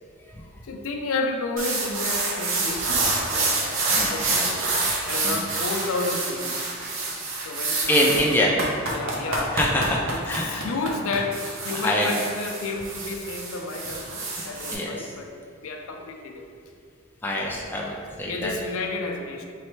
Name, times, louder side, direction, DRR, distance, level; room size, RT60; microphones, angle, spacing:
voice 1, 0.6-3.8 4.1-4.8 5.1-6.7 7.4-9.6 10.1-15.3 15.6-16.4 18.1-19.4, left 3 dB, 80° left, 2 dB, 0.5 m, -31 dB
sound 1, 1.6-14.7, right 3 dB, 70° right, 0.7 m, -27 dB
voice 2, 4.0-4.7 5.2-5.5 7.9-8.5 9.5-10.7 11.7-12.3 14.7-15.1 17.2-18.6, left 1 dB, 10° left, -3 dB, 0.3 m, -25 dB
3.2 x 3.2 x 4.4 m, 2.2 s
head